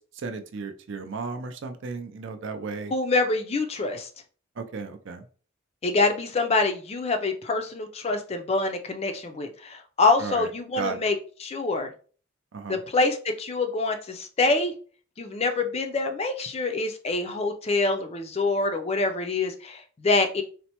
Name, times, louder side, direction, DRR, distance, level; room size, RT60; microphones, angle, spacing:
voice 1, 0.1-2.9 4.6-5.2 10.2-10.5 10.8-11.0 12.5-12.8, right 4 dB, 55° right, 7 dB, 0.4 m, -34 dB
voice 2, 2.9-4.1 5.8-11.9 12.7-14.7 15.2-20.4, left 3 dB, 30° left, 6 dB, 0.4 m, -25 dB
4.2 x 2.0 x 2.9 m, 0.40 s
head